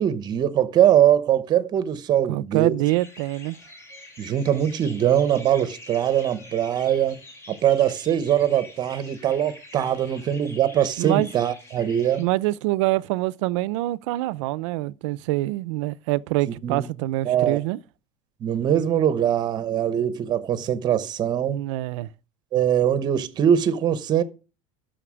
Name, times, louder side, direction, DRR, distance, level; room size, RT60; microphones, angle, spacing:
voice 1, 0.0-2.7 4.2-7.2 7.5-12.3 16.6-16.9 17.2-17.6 18.4-21.6 22.5-24.2, right 10 dB, 25° right, 0.8 m, -22 dB
voice 2, 2.3-3.6 11.0-11.3 12.2-17.8 21.5-22.1, right 18 dB, 80° right, 0.6 m, -25 dB
sound 1, 2.8-12.2, left 2 dB, 15° left, 2.4 m, -45 dB
11.0 x 6.5 x 6.2 m
cardioid pair, 170°, 16 cm